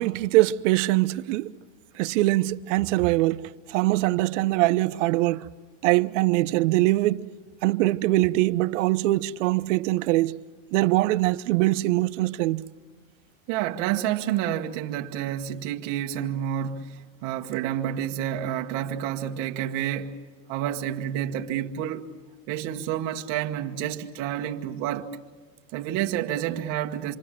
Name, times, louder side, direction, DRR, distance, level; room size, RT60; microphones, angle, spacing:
voice 1, 0.0-1.5 2.0-5.5 5.8-7.3 7.6-10.4 10.7-12.6, right 18 dB, 70° right, 0.9 m, -23 dB
voice 2, 13.5-20.2 20.5-22.1 22.5-25.2 25.7-27.1, right 11 dB, 50° right, 1.4 m, -29 dB
27.0 x 24.0 x 7.6 m
supercardioid pair, 145°, 38 cm